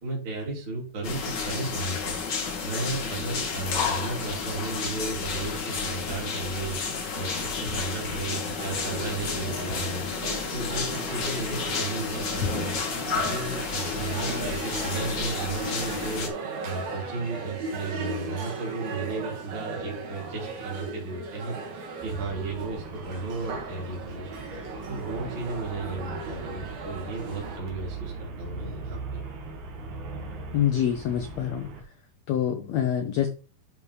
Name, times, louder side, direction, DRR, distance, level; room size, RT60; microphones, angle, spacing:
voice 1, 0.0-2.2 2.6-10.0 10.5-12.8 13.1-16.3 16.6-24.3 24.9-29.2, right 3 dB, 30° right, -4 dB, 3.5 m, -34 dB
sound 1, 1.0-16.3, left 5 dB, 65° left, 1.1 m, -31 dB
sound 2, 8.6-27.6, right 3 dB, 85° right, 3.8 m, -37 dB
Traffic noise roadway noise, 22.0-31.8, right 4 dB, 60° right, 2.8 m, -40 dB
voice 2, 30.5-31.7 32.3-33.3, left 10 dB, 85° left, 6 dB, 1.5 m, -26 dB
11.5 x 5.1 x 3.3 m, 0.33 s
omnidirectional pair, 4.2 m